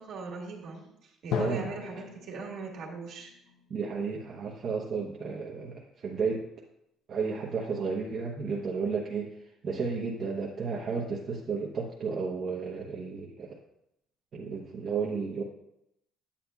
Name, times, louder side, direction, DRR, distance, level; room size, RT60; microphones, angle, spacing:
voice 1, 0.0-3.3, right 4 dB, 70° right, -1 dB, 1.8 m, -40 dB
Drum, 1.3-5.0, left 7 dB, 80° left, 0.6 m, -38 dB
voice 2, 1.3-2.0 3.7-6.5 7.1-9.4 9.6-13.6 14.3-15.4, right 5 dB, 50° right, -3 dB, 0.9 m, -33 dB
8.5 x 8.5 x 2.3 m, 0.79 s
cardioid pair, 110°, 0 cm